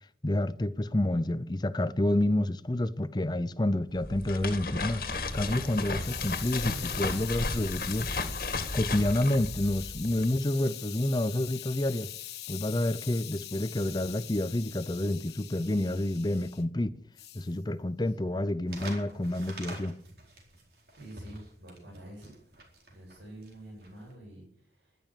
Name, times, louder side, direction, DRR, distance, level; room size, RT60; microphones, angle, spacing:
voice 1, 0.2-8.1 8.7-12.1 12.5-16.9 17.3-20.0, left 1 dB, 25° left, 0.6 m, -29 dB
sound 1, 3.9-10.3, left 3 dB, 55° left, 1.9 m, -34 dB
Hiss, 4.9-16.6 17.2-17.5, left 14 dB, 70° left, 1.1 m, -43 dB
sound 2, 18.7-24.1, right 2 dB, 60° right, 4.4 m, -47 dB
voice 2, 21.0-22.3 22.9-25.0, right 1 dB, 85° right, 7.8 m, -48 dB
12.5 x 11.0 x 9.1 m
head